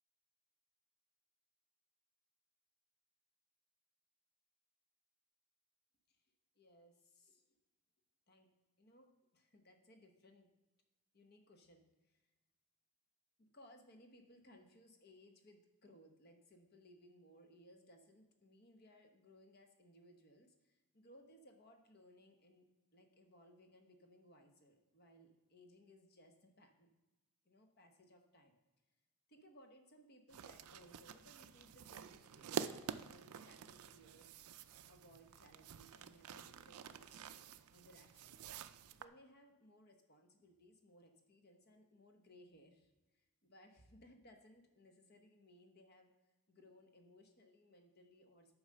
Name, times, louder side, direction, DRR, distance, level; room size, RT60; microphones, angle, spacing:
voice 1, 6.5-7.4 8.3-8.5 8.8-10.5 11.1-12.2 13.4-22.7 22.9-26.9 27.4-28.5 29.3-37.4 37.7-38.3 38.9-46.1 46.5-48.6, equal, 45° left, 4 dB, 1.0 m, -64 dB
sound 1, 30.3-39.0, right 7 dB, 90° right, 0.4 m, -48 dB
8.8 x 4.8 x 6.6 m, 1.1 s
head